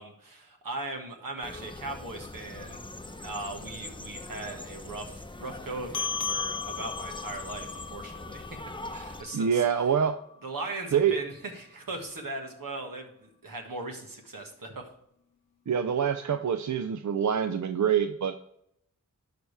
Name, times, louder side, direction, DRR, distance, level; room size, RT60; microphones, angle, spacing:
voice 1, 0.0-2.8 3.2-9.8 10.4-14.9, right 2 dB, 80° right, 2 dB, 1.7 m, -39 dB
sound 1, 1.4-9.2, left 2 dB, 15° left, 0.7 m, -42 dB
sound 2, 5.9-10.7, left 5 dB, 70° left, 0.8 m, -37 dB
voice 2, 9.3-10.2 10.9-11.1 15.7-18.4, right 8 dB, 60° right, 9 dB, 0.5 m, -25 dB
12.0 x 4.9 x 3.4 m, 0.74 s
cardioid pair, 40°, 33 cm